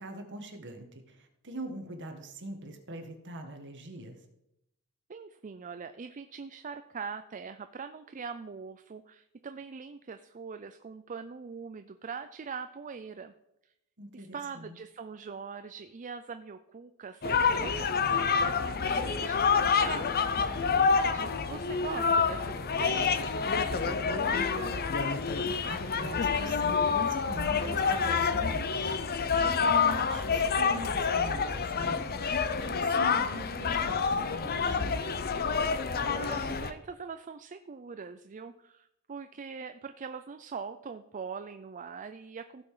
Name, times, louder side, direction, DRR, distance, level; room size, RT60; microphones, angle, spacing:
voice 1, 0.0-4.2 14.0-14.8 20.7-20.9 25.6-32.0 32.3-35.1, right 1 dB, 55° right, 4 dB, 1.6 m, -42 dB
voice 2, 5.1-13.3 14.1-20.1 20.8-24.9 35.7-42.6, right 5 dB, 35° right, 9 dB, 0.4 m, -42 dB
sound 1, 17.2-36.7, left 5 dB, 45° left, 0.7 m, -28 dB
15.5 x 5.9 x 4.9 m, 0.84 s
head